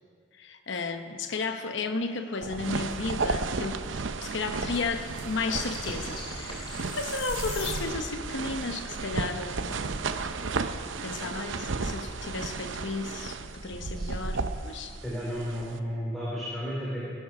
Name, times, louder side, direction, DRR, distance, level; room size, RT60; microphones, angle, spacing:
voice 1, 0.4-3.8 4.2-6.7 6.9-9.9 11.0-15.0, left 4 dB, 65° left, 6 dB, 0.9 m, -33 dB
sound 1, 2.4-15.8, right 4 dB, 70° right, 0.7 m, -34 dB
sound 2, 3.1-3.2 3.7-3.8 4.0-9.6 10.5-10.6 10.9-11.5, left 1 dB, 25° left, 2.5 m, -46 dB
sound 3, 3.8-3.9 4.0-8.3, left 5 dB, 50° left, 2.2 m, -43 dB
voice 2, 15.0-17.1, equal, ahead, -9 dB, 3.6 m, -33 dB
18.5 x 11.0 x 5.9 m, 2.2 s
head